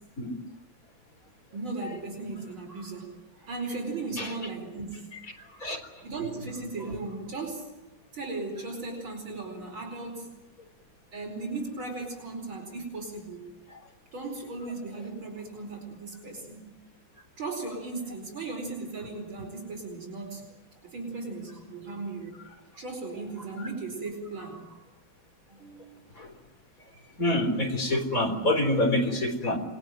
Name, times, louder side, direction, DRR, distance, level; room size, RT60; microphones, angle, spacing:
voice 1, 1.5-5.2 5.4-5.8 6.0-7.7 8.1-10.3 11.1-13.5 14.1-16.7 17.4-20.4 20.8-22.4 22.8-24.8 25.5-26.0, right 3 dB, 80° right, 2 dB, 5.6 m, -37 dB
voice 2, 27.2-29.6, left 1 dB, 40° left, 5 dB, 4.4 m, -26 dB
27.5 x 21.0 x 9.2 m, 1.0 s
omnidirectional pair, 2.2 m